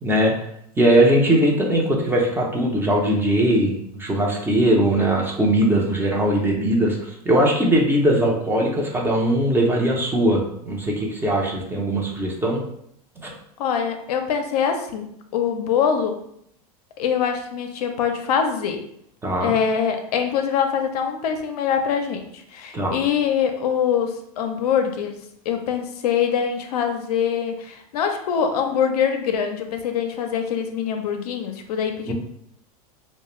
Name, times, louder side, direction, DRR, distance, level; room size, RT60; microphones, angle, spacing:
voice 1, 0.0-0.3 0.8-10.4 10.7-12.6 13.2-13.3 19.2-19.5 22.7-22.9 32.1-32.2, right 1 dB, 10° right, -1 dB, 0.5 m, -20 dB
voice 2, 13.6-16.2 17.0-18.8 19.4-25.2 25.5-32.1, left 7 dB, 75° left, 5 dB, 0.5 m, -24 dB
2.3 x 2.1 x 3.0 m, 0.71 s
hypercardioid pair, 105°, 20 cm